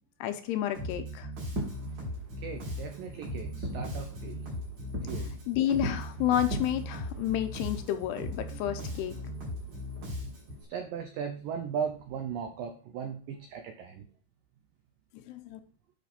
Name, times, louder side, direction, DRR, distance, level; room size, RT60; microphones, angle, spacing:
voice 1, 0.2-1.3 5.5-9.1 15.3-15.6, left 11 dB, 80° left, 8 dB, 2.6 m, -30 dB
Bass guitar, 0.7-10.6, left 1 dB, 60° right, 5.1 m, -38 dB
Fireworks, 1.4-10.7, equal, 30° right, 2.2 m, -42 dB
voice 2, 2.4-4.5 5.0-5.3 10.7-14.1, right 7 dB, 85° right, 6 dB, 2.0 m, -37 dB
10.0 x 5.3 x 4.3 m, 0.39 s
omnidirectional pair, 5.1 m